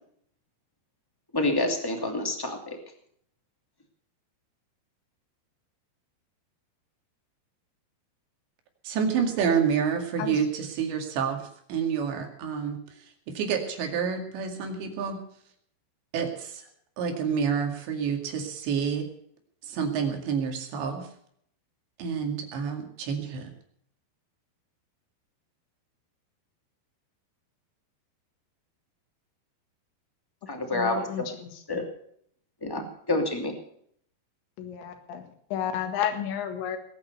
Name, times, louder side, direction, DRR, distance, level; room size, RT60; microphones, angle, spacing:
voice 1, 1.3-2.8 30.5-31.2 31.7-31.8 32.6-33.5, left 2 dB, 10° left, 3 dB, 1.5 m, -28 dB
voice 2, 8.8-12.8 13.4-15.2 16.1-16.6 17.0-19.1 19.7-21.1 22.0-23.5, right 6 dB, 80° right, 4 dB, 4.6 m, -28 dB
voice 3, 30.7-31.8 34.6-36.8, left 9 dB, 90° left, 6 dB, 4.2 m, -32 dB
19.5 x 9.4 x 6.8 m, 0.65 s
omnidirectional pair, 5.0 m